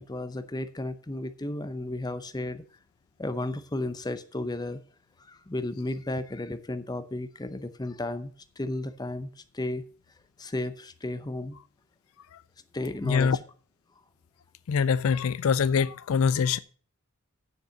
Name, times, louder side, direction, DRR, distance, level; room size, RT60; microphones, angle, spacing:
voice 1, 0.0-2.6 3.2-4.8 5.3-8.3 8.6-9.3 9.5-9.8 10.4-11.6 12.7-13.3, left 1 dB, 20° left, 0.6 m, -33 dB
voice 2, 13.0-13.4 14.7-16.6, left 6 dB, 70° left, 0.4 m, -24 dB
7.1 x 6.7 x 7.6 m
head